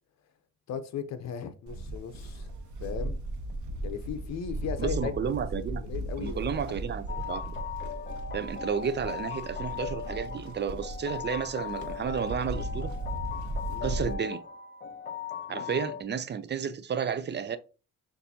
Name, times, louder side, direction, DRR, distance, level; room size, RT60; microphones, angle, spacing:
voice 1, 0.7-2.5 2.8-3.2 3.8-5.2 5.8-6.6 8.5-8.6 13.7-13.9 15.5-15.7, left 7 dB, 60° left, 0.8 m, -37 dB
Livestock farm animals working animals, 1.7-14.1, right 1 dB, 75° right, 1.0 m, -37 dB
voice 2, 4.8-5.9 6.2-7.6 8.3-13.0 13.8-14.4 15.5-17.6, right 7 dB, 35° right, 0.5 m, -32 dB
sound 1, 7.1-16.0, left 8 dB, 35° left, 0.7 m, -38 dB
6.7 x 2.7 x 2.8 m
cardioid pair, 90°, 30 cm